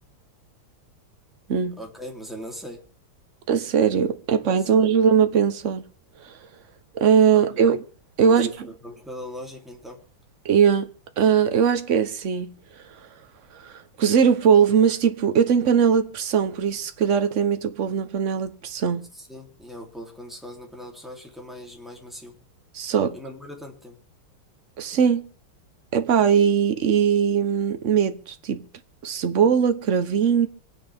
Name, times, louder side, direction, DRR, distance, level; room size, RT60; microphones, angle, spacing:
voice 1, 1.8-2.8 4.6-4.7 7.3-7.8 8.2-10.0 19.1-22.4 23.1-24.0, equal, ahead, 3.0 m, -40 dB
voice 2, 3.5-5.8 6.2-6.4 6.9-7.8 8.2-8.5 10.4-10.9 11.2-12.5 13.6-13.7 14.0-19.1 22.7-23.2 24.8-25.3 25.9-28.6 29.0-30.5, right 7 dB, 45° right, 1.0 m, -20 dB
26.0 x 9.7 x 3.5 m
omnidirectional pair, 2.4 m